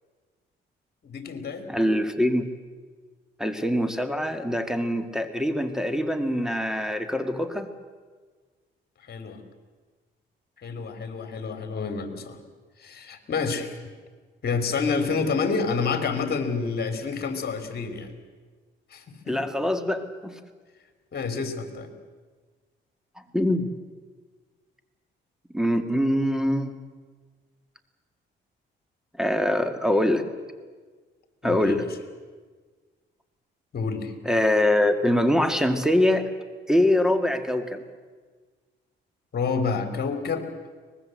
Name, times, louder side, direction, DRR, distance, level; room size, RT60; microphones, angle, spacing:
voice 1, 1.0-1.7 9.1-9.4 10.6-12.4 12.8-13.9 14.4-18.1 18.9-19.4 21.1-21.9 31.4-31.9 33.7-34.1 39.3-40.5, left 5 dB, 50° left, 8 dB, 3.4 m, -28 dB
voice 2, 1.7-2.5 3.4-7.7 19.3-20.4 23.3-23.7 25.5-26.7 29.2-30.2 31.4-31.8 34.2-36.3 36.7-37.8, left 1 dB, 5° right, 8 dB, 2.1 m, -23 dB
24.0 x 20.0 x 7.8 m, 1.4 s
cardioid pair, 90°, 20 cm